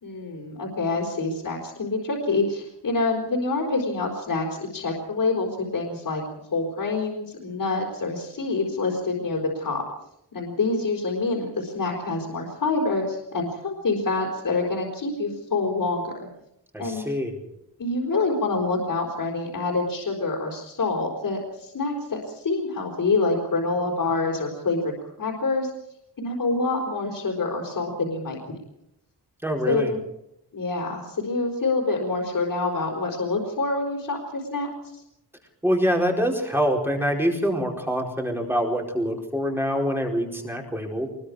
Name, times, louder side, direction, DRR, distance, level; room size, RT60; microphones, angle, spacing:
voice 1, 0.0-6.2 6.5-9.8 10.3-16.3 16.8-17.0 17.8-25.7 26.2-28.6 29.7-30.0 30.5-35.0, left 3 dB, 55° left, -1 dB, 4.6 m, -26 dB
voice 2, 16.7-17.5 29.4-29.9 35.6-41.1, equal, 5° right, 1 dB, 4.6 m, -25 dB
24.5 x 21.5 x 5.0 m, 0.81 s
wide cardioid pair, 180°, 41 cm